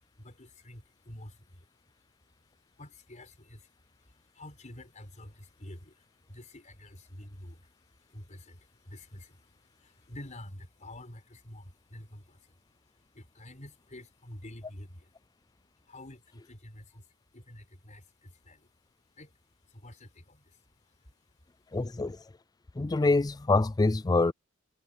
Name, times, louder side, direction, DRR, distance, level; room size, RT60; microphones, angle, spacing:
voice 1, 0.0-15.1 15.6-18.8 19.2-21.4 21.8-21.9, left 1 dB, 35° left, 4.7 m, -49 dB
voice 2, 21.7-22.2 22.8-24.3, left 3 dB, 20° left, 0.4 m, -25 dB
head